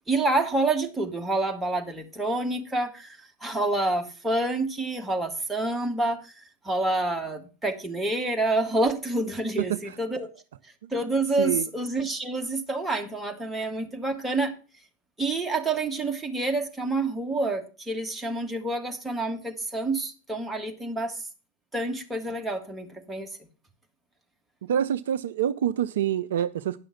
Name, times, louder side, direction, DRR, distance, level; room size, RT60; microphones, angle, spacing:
voice 1, 0.1-6.3 6.6-10.3 10.9-14.5 15.2-21.2 21.7-23.3, right 2 dB, 5° right, 1.5 m, -28 dB
voice 2, 9.6-10.0 11.4-11.7 24.6-26.8, right 10 dB, 60° right, 0.4 m, -26 dB
10.0 x 6.2 x 5.8 m
figure-of-eight pair, 90°, 0 cm